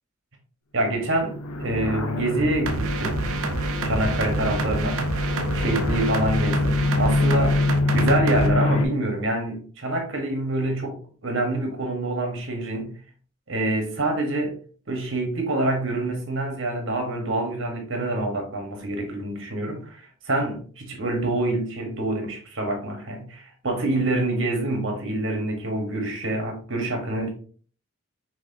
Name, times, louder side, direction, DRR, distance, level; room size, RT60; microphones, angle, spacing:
voice 1, 0.7-3.3 3.8-5.0 5.5-7.6 7.9-12.9 13.5-14.6 14.9-27.3, right 1 dB, 60° right, 1.4 m, -26 dB
sound 1, 1.0-8.9, left 2 dB, 75° left, 0.5 m, -25 dB
sound 2, 2.7-8.5, right 3 dB, 80° right, 0.7 m, -28 dB
5.6 x 3.1 x 2.8 m
head